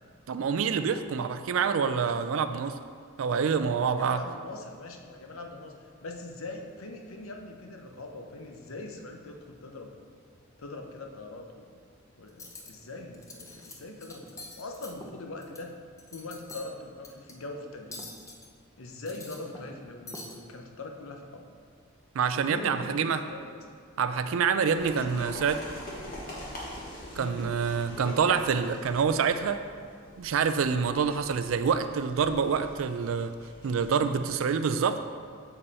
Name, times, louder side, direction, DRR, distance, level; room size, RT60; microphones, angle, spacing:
voice 1, 0.3-2.8 3.2-4.2 22.1-23.2 24.0-25.6 27.2-29.6 30.2-33.3 33.6-35.0, right 6 dB, 70° right, 10 dB, 0.4 m, -26 dB
voice 2, 3.6-5.7 6.0-10.0 10.6-11.8 12.2-15.8 16.1-18.1 18.8-21.5 22.3-23.6 24.8-25.5 27.2-27.4, left 2 dB, 75° left, 3 dB, 0.8 m, -42 dB
Cutlery silverware, 12.3-12.7 13.1-13.7 14.0-15.6 16.0-16.7 17.0-17.3 17.9-18.5 18.9-19.8 20.1-20.4, left 2 dB, 15° left, 0.6 m, -44 dB
sound 1, 24.6-34.3, left 1 dB, 45° left, 1.5 m, -45 dB
7.1 x 5.4 x 4.1 m, 2.1 s
head